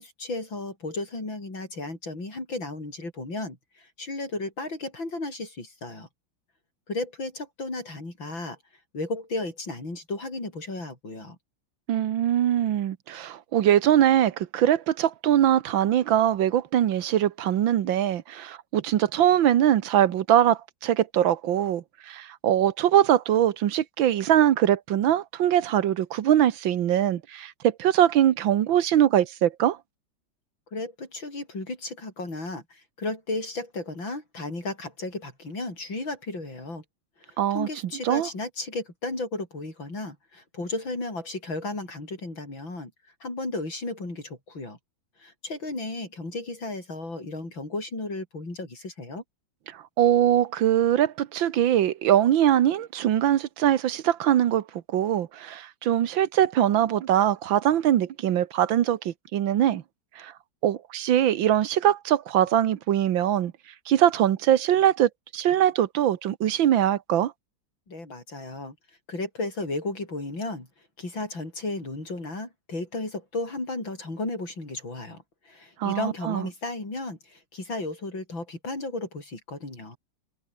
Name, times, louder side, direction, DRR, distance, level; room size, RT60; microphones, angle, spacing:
voice 1, 0.0-6.1 6.9-8.6 8.9-11.4 30.7-36.8 37.2-42.9 43.2-44.8 45.2-49.2 67.9-68.8 69.1-70.7 71.0-80.0, left 2 dB, 85° left, 8.3 m, -34 dB
voice 2, 11.9-29.8 37.4-37.7 38.0-38.3 50.0-59.8 60.2-60.3 60.6-63.5 63.9-67.3 75.8-76.5, right 11 dB, 85° right, 1.8 m, -22 dB
omnidirectional pair, 2.1 m